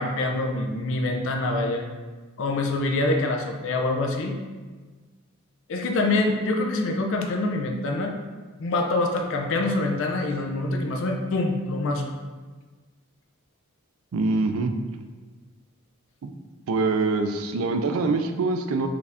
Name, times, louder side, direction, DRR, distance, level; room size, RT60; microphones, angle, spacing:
voice 1, 0.0-1.9 2.4-4.4 5.7-8.1 8.6-12.2, left 2 dB, 60° left, 3 dB, 0.4 m, -25 dB
voice 2, 14.1-14.7 16.2-16.3 16.7-18.9, right 3 dB, 70° right, 7 dB, 0.4 m, -24 dB
4.8 x 2.5 x 3.4 m, 1.4 s
head